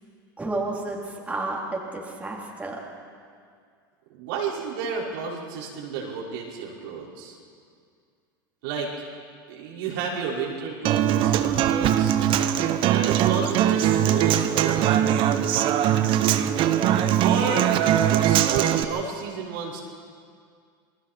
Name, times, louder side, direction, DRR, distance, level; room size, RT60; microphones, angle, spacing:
voice 1, 0.4-2.8, right 2 dB, 10° right, -4 dB, 4.1 m, -31 dB
voice 2, 4.1-7.4 8.6-8.9 9.5-12.2 12.9-15.7 17.2-17.7 18.1-19.8, right 5 dB, 70° right, -4 dB, 5.4 m, -31 dB
Human voice / Acoustic guitar, 10.8-18.8, right 10 dB, 45° right, 1.1 m, -21 dB
28.0 x 20.0 x 4.6 m, 2.2 s
hypercardioid pair, 105°, 12 cm